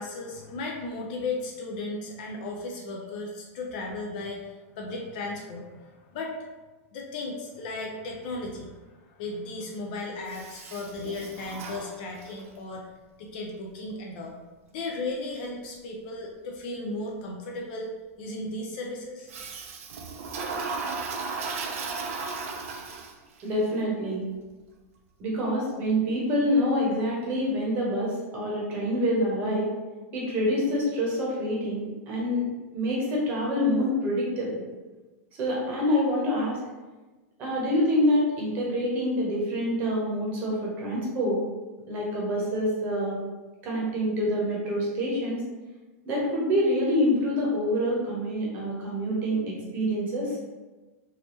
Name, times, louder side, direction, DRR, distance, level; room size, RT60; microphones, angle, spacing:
voice 1, 0.0-6.4 6.9-12.9 13.2-14.3 14.7-19.3, left 2 dB, 40° left, 0 dB, 0.4 m, -35 dB
Toilet flush, 10.3-12.5 19.3-23.4, right 4 dB, 70° right, 0.5 m, -35 dB
voice 2, 23.4-24.2 25.2-29.7 30.1-32.4 32.7-34.6 35.4-36.6 37.4-41.4 41.9-43.2 43.6-45.4 46.0-50.4, equal, 25° right, -4 dB, 0.9 m, -26 dB
3.4 x 3.1 x 3.0 m, 1.2 s
supercardioid pair, 180°, 8 cm